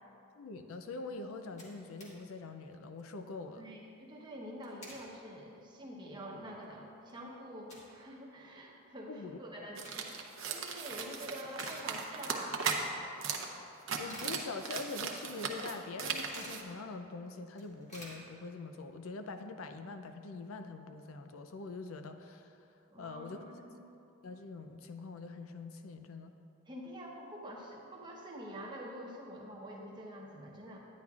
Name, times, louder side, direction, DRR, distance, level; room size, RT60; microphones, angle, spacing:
voice 1, 0.4-3.6 9.1-9.7 14.0-22.6 23.0-23.4 24.2-26.3, left 3 dB, 85° left, 7 dB, 0.5 m, -44 dB
sound 1, 1.3-2.2 2.5-2.6 2.9-3.2 4.4-5.1 5.6-5.7 6.2-6.3 6.6-8.0 8.3-8.4 9.4-10.3 10.8-11.1 11.4-12.4 12.7-12.8 13.5-15.0 15.3-15.4 15.6-16.7 17.1-17.2 17.4-18.8, equal, 35° left, 1.6 m, -52 dB
voice 2, 3.6-10.1 10.5-12.7 22.9-23.8 26.7-30.8, equal, 20° right, -2 dB, 0.9 m, -46 dB
sound 2, 9.8-12.8 13.2-13.5 13.7-16.6, right 6 dB, 70° right, 0.7 m, -37 dB
10.0 x 9.5 x 2.4 m, 2.7 s
head